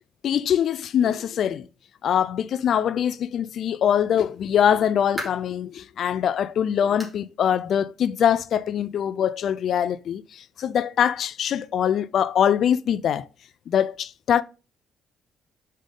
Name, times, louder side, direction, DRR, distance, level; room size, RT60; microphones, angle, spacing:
voice 1, 0.2-1.7 2.0-13.2 13.7-14.4, left 9 dB, 65° left, 0.4 m, -23 dB
sound 1, 5.2-5.6 6.1-6.2 7.0-7.3 7.6-7.7 8.2-8.3 9.4-9.5, equal, 10° right, 2.6 m, -37 dB
5.4 x 5.2 x 3.8 m
cardioid pair, 90°, 0 cm